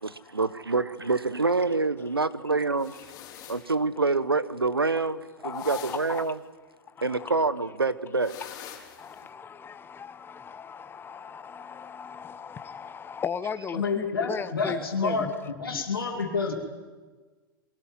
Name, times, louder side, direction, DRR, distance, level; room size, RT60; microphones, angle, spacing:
voice 1, 0.0-2.9 3.5-6.4 7.0-8.3, right 3 dB, 90° right, 1.0 m, -26 dB
sound 1, 2.8-3.7 5.5-6.3 8.2-9.2, left 10 dB, 35° left, 5.2 m, -45 dB
voice 2, 5.4-6.3 7.0-7.3 9.0-15.3 15.7-16.0, left 6 dB, 20° left, 1.1 m, -37 dB
voice 3, 13.7-16.5, left 4 dB, 80° left, 3.2 m, -28 dB
22.0 x 19.5 x 9.7 m
figure-of-eight pair, 100°, 12 cm